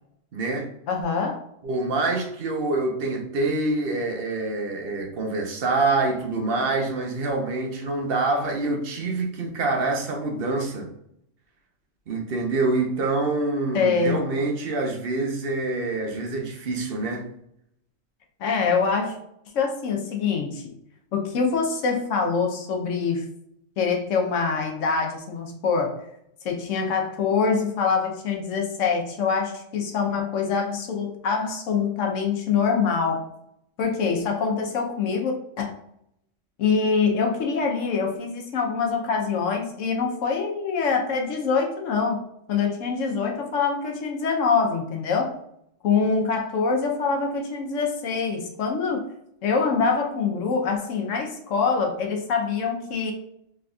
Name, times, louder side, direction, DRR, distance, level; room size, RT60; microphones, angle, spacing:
voice 1, 0.3-0.7 1.6-10.9 12.1-17.3, right 3 dB, 50° right, 2 dB, 0.9 m, -26 dB
voice 2, 0.9-1.4 13.7-14.2 18.4-19.2 19.5-20.6 21.1-23.2 23.8-26.0 26.4-33.3 33.8-35.7 36.6-42.2 42.5-45.4 45.8-49.1 49.4-53.1, left 5 dB, 70° left, 2 dB, 1.0 m, -24 dB
3.9 x 3.3 x 2.3 m, 0.74 s
omnidirectional pair, 1.4 m